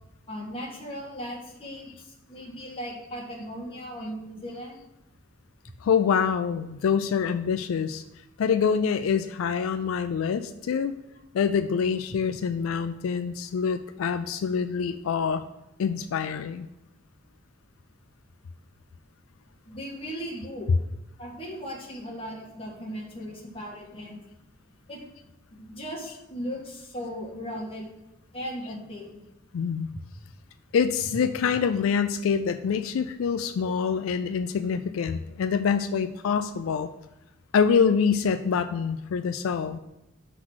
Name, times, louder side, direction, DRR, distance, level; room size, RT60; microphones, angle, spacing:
voice 1, 0.3-4.8 19.6-20.7 21.2-24.2 24.9-25.0 25.5-27.9 28.3-29.1 33.6-33.7, equal, 30° left, -2 dB, 1.6 m, -37 dB
voice 2, 5.8-8.0 8.4-10.9 11.3-15.4 15.8-16.7 29.5-29.9 30.7-36.9 37.5-39.8, left 6 dB, 85° left, 9 dB, 0.4 m, -25 dB
5.9 x 3.9 x 6.2 m, 0.94 s
head